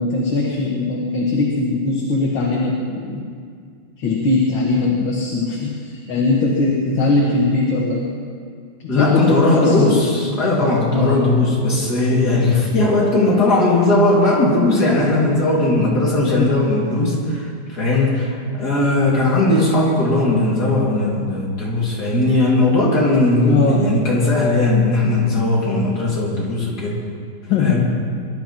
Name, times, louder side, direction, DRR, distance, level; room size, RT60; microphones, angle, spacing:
voice 1, 0.0-3.3 4.0-8.0 8.8-10.1 10.9-11.2 16.4-16.6 23.5-23.8 27.5-27.9, left 3 dB, 60° left, -2 dB, 2.2 m, -20 dB
voice 2, 8.9-27.0 27.6-27.9, left 2 dB, 45° left, -5 dB, 3.8 m, -18 dB
22.0 x 12.0 x 4.5 m, 2.1 s
omnidirectional pair, 2.4 m